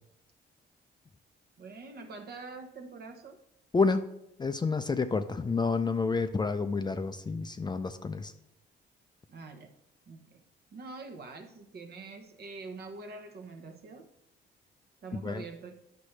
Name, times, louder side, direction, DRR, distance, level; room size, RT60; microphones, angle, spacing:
voice 1, 1.6-3.4 9.3-9.7 10.1-10.4 10.7-14.1 15.0-15.7, right 3 dB, 55° right, 1.0 m, -45 dB
voice 2, 4.4-8.3 15.2-15.4, left 4 dB, 20° left, 0.4 m, -29 dB
10.0 x 6.0 x 3.2 m
cardioid pair, 90°, 20 cm